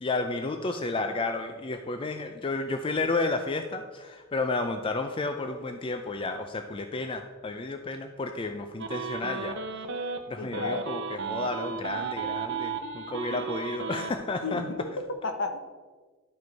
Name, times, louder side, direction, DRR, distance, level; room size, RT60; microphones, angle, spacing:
voice 1, 0.0-9.6 9.9-14.6, left 3 dB, 25° left, 6 dB, 0.4 m, -32 dB
sound 1, 8.8-10.2 10.5-14.1, right 5 dB, 60° right, 0.7 m, -34 dB
voice 2, 10.4-10.9 13.3-13.5 14.4-15.6, left 3 dB, 60° left, 7 dB, 0.8 m, -33 dB
12.0 x 5.0 x 4.6 m, 1.4 s
head